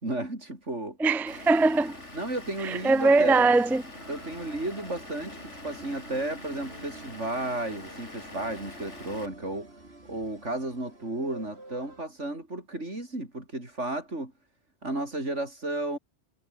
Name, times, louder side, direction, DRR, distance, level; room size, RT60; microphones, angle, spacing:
voice 1, 0.0-1.0 2.1-3.5 4.1-9.7 10.1-14.3 14.8-16.0, right 2 dB, 80° right, 6.7 m, -33 dB
voice 2, 1.0-2.0 2.6-3.8, right 3 dB, ahead, 0.5 m, -21 dB
Vehicle / Engine, 1.3-9.3, left 2 dB, 80° left, 6.2 m, -45 dB
sound 1, 3.9-12.1, right 2 dB, 60° right, 5.1 m, -48 dB
omnidirectional pair, 1.2 m